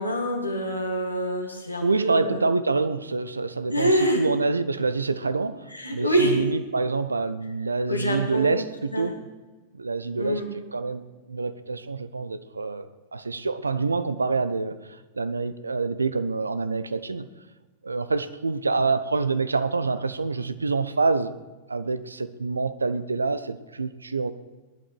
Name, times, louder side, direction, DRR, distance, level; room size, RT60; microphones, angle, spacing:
voice 1, 0.0-2.5 3.7-4.2 5.7-6.4 7.9-8.6 8.9-9.1 10.2-10.5, equal, 90° left, 0 dB, 2.8 m, -25 dB
voice 2, 1.8-9.1 9.7-10.4 10.7-17.3 17.8-21.3 21.7-24.3, right 4 dB, 80° right, 13 dB, 0.8 m, -26 dB
19.5 x 11.5 x 4.6 m, 1.2 s
figure-of-eight pair, 90°, 0 cm